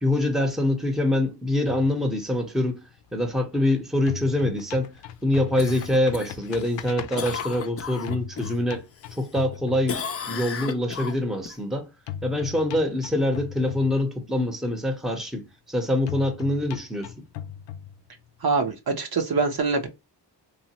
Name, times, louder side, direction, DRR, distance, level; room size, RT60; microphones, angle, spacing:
voice 1, 0.0-2.8 3.1-4.9 5.2-8.8 9.1-11.9 12.2-17.2, left 1 dB, ahead, 0.7 m, -25 dB
sound 1, 1.6-3.7 3.9-10.4 12.1-14.4 16.1-18.4, left 9 dB, 85° left, 0.5 m, -38 dB
Cough, 5.6-8.6 9.0-9.6 9.9-11.6 16.0-16.1, left 7 dB, 35° left, 0.4 m, -35 dB
voice 2, 18.4-19.9, right 4 dB, 60° right, 0.8 m, -24 dB
3.1 x 2.1 x 2.8 m
cardioid pair, 75°, 42 cm